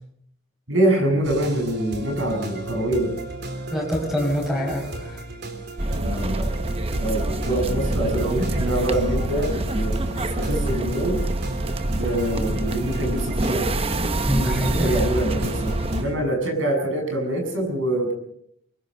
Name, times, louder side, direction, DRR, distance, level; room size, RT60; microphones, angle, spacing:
voice 1, 0.7-3.2 6.0-6.5 7.0-10.0 10.4-11.2 11.9-13.6 14.3-18.1, right 1 dB, 90° right, 4 dB, 7.2 m, -25 dB
sound 1, 1.2-16.1, right 2 dB, 55° right, 3.7 m, -35 dB
voice 2, 3.7-5.2 14.2-15.0, equal, ahead, 2 dB, 6.1 m, -25 dB
sound 2, 5.8-16.0, right 1 dB, 30° right, 0.8 m, -26 dB
23.5 x 21.5 x 5.5 m, 0.71 s
head